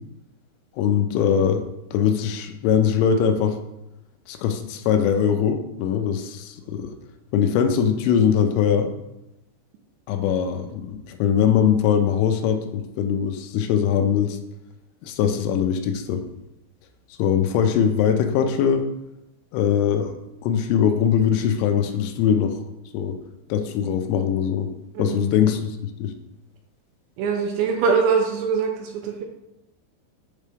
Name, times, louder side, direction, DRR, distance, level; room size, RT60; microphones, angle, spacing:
voice 1, 0.8-1.7 1.9-3.6 4.3-6.9 7.3-8.9 10.1-14.4 15.0-16.2 17.2-18.9 19.5-20.2 20.4-22.6 22.9-23.2 23.5-24.7 25.0-26.1, left 8 dB, 85° left, 7 dB, 3.1 m, -21 dB
voice 2, 27.2-29.2, right 5 dB, 80° right, 2 dB, 2.7 m, -23 dB
8.3 x 3.7 x 3.4 m, 0.91 s
omnidirectional pair, 5.5 m